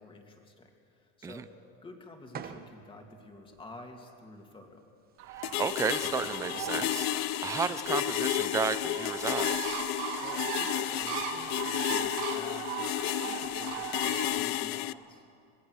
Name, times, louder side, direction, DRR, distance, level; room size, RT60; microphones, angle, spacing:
voice 1, 0.0-1.5 1.8-4.8 10.2-12.9 13.2-15.2, left 2 dB, 15° left, 3 dB, 2.5 m, -49 dB
sound 1, 2.3-3.0 3.6-3.7 5.5-5.6 5.8-7.0, right 8 dB, 25° right, 1.0 m, -46 dB
Bird, 5.2-14.4, right 8 dB, 65° right, 2.8 m, -38 dB
voice 2, 5.3-9.8, right 6 dB, 10° right, 13 dB, 0.4 m, -33 dB
sound 2, 5.4-14.9, left 17 dB, 60° left, 0.6 m, -32 dB
26.0 x 18.0 x 6.4 m, 2.4 s
supercardioid pair, 145°, 36 cm